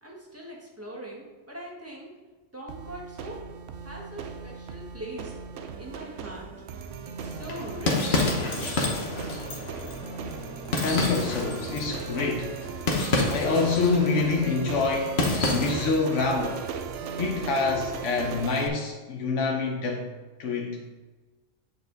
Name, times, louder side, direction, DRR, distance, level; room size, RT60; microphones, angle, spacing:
voice 1, 0.0-2.1 2.5-3.4 3.8-5.4 5.8-6.5 7.0-8.8, right 1 dB, 10° right, -3 dB, 1.4 m, -41 dB
sound 1, 2.7-18.7, right 6 dB, 80° right, 0.9 m, -37 dB
sound 2, 7.4-16.0, left 2 dB, 60° left, 1.4 m, -29 dB
voice 2, 10.8-12.5 13.3-15.2 15.5-16.6 17.2-20.1 20.4-20.8, left 4 dB, 80° left, 0 dB, 1.1 m, -26 dB
8.5 x 4.6 x 3.9 m, 1.3 s
omnidirectional pair, 1.2 m